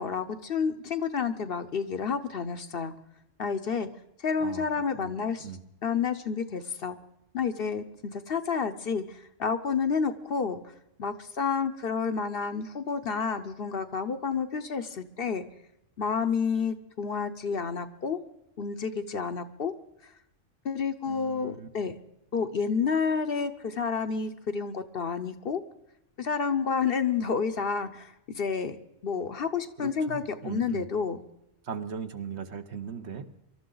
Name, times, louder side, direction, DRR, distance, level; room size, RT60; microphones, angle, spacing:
voice 1, 0.0-2.9 3.4-3.9 4.2-5.5 5.8-7.0 7.3-10.6 11.0-15.4 16.0-18.2 18.6-19.7 20.6-21.9 22.3-25.6 26.2-28.8 29.0-31.2, left 6 dB, 55° left, 9 dB, 0.9 m, -30 dB
voice 2, 21.1-21.7 29.8-30.9 31.6-33.3, right 6 dB, 65° right, 8 dB, 1.2 m, -38 dB
24.5 x 12.5 x 3.9 m, 0.85 s
omnidirectional pair, 1.3 m